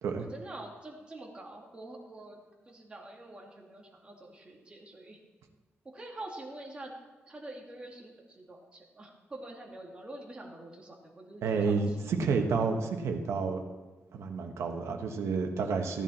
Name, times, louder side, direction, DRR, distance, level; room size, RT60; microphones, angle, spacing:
voice 1, 0.3-2.4 2.7-5.2 5.8-6.9 7.3-12.0, right 1 dB, 20° right, -1 dB, 2.2 m, -46 dB
voice 2, 11.4-13.6 14.1-16.0, right 4 dB, 85° right, 4 dB, 1.3 m, -30 dB
14.5 x 10.5 x 4.3 m, 1.2 s
wide cardioid pair, 130°, 5 cm